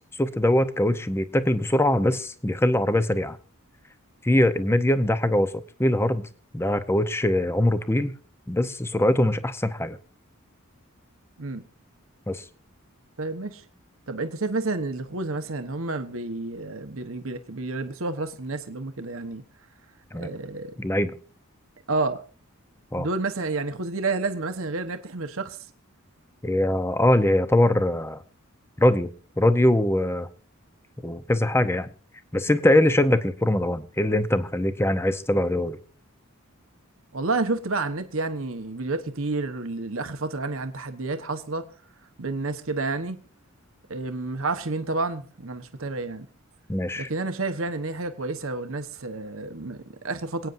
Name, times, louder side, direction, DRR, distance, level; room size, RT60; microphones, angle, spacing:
voice 1, 0.2-3.4 4.2-5.5 5.8-6.3 6.5-8.1 8.5-10.0 12.3-12.4 20.1-20.3 20.8-21.1 22.9-23.1 26.4-28.2 28.8-29.1 29.4-30.3 31.0-31.9 32.3-35.8 46.7-47.1, left 1 dB, 10° left, 0.8 m, -22 dB
voice 2, 13.2-13.6 14.1-19.4 20.1-20.8 21.9-22.2 23.0-25.6 37.1-41.7 42.2-43.2 43.9-46.3 47.0-50.5, right 3 dB, 65° right, 1.1 m, -30 dB
27.5 x 9.2 x 2.6 m
head